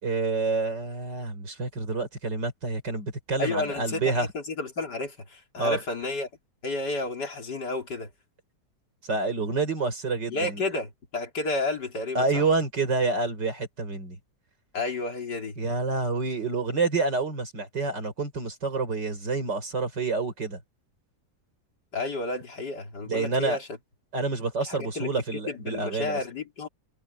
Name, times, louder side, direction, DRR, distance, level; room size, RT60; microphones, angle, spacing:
voice 1, 0.0-4.3 5.6-5.8 9.0-10.6 12.2-14.2 15.6-20.6 23.0-23.6 24.1-26.2, right 3 dB, 85° right, 5.6 m, -28 dB
voice 2, 3.4-6.3 6.6-8.1 10.3-12.4 14.7-15.6 21.9-23.7 24.7-26.7, left 3 dB, 75° left, 3.9 m, -31 dB
omnidirectional pair, 1.8 m